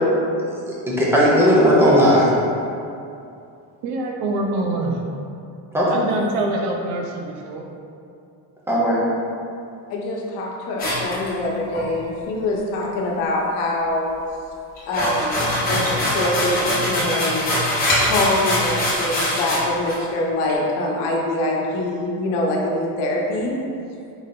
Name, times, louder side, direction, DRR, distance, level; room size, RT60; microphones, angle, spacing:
voice 1, 0.7-2.3 5.7-6.0 8.7-9.0, equal, 5° right, -6 dB, 0.5 m, -16 dB
voice 2, 3.8-5.0 5.9-7.6, right 2 dB, 85° right, 1 dB, 0.7 m, -25 dB
voice 3, 9.9-14.1 14.9-15.9 16.1-17.5 18.0-23.6, left 1 dB, 85° left, -2 dB, 0.9 m, -24 dB
sound 1, 10.8-11.8 14.8-19.6 19.9-20.0 20.5-20.6, left 1 dB, 20° left, 1.2 m, -22 dB
4.9 x 2.8 x 3.7 m, 2.6 s
cardioid pair, 175°, 39 cm